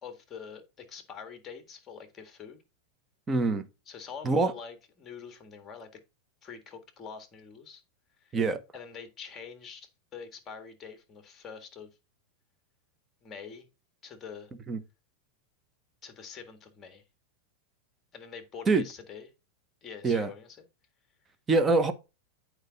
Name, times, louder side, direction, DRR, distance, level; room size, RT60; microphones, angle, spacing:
voice 1, 0.0-2.6 3.9-5.9 6.4-7.8 8.2-8.4 8.7-11.9 13.2-13.7 14.0-14.5 16.0-17.0 18.1-19.3 19.8-20.6, left 6 dB, 20° left, 1.6 m, -45 dB
voice 2, 3.3-3.7 4.2-4.5 8.3-8.6 14.7-14.8 18.7-18.8 20.0-20.3 21.5-21.9, right 3 dB, 15° right, 0.8 m, -24 dB
8.7 x 4.7 x 4.0 m
supercardioid pair, 150°, 0 cm